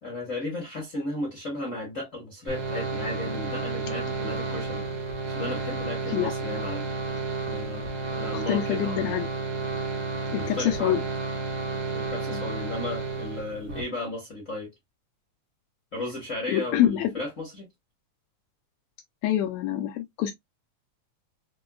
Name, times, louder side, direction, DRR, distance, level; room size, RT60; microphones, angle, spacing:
voice 1, 0.0-4.8 5.3-7.2 7.5-9.2 10.4-11.0 11.9-14.7 15.9-17.7, left 1 dB, 50° left, 0.9 m, -35 dB
sound 1, 2.5-13.8, right 4 dB, 65° right, 0.9 m, -31 dB
voice 2, 8.3-9.3 10.3-11.0 12.3-12.4 16.5-17.1 19.2-20.3, left 12 dB, 80° left, 1.7 m, -26 dB
6.0 x 2.2 x 2.2 m
omnidirectional pair, 3.3 m